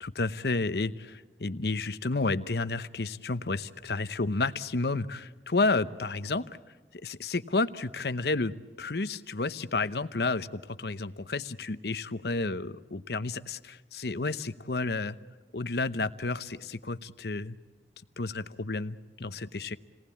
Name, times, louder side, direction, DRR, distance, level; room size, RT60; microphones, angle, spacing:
voice 1, 0.0-6.6 7.0-15.2 15.5-17.5 18.2-19.8, left 3 dB, 70° left, 13 dB, 0.9 m, -31 dB
29.0 x 19.0 x 8.5 m, 1.4 s
head